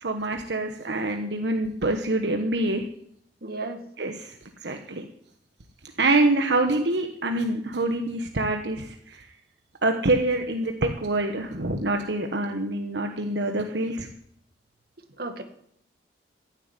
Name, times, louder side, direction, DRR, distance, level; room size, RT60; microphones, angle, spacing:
voice 1, 0.0-2.8 4.0-4.3 4.6-5.1 6.0-9.3 9.8-14.1, right 2 dB, 80° right, 5 dB, 1.3 m, -25 dB
voice 2, 3.4-3.8 15.2-15.4, right 3 dB, 60° right, 7 dB, 2.0 m, -33 dB
15.0 x 8.1 x 9.9 m, 0.68 s
head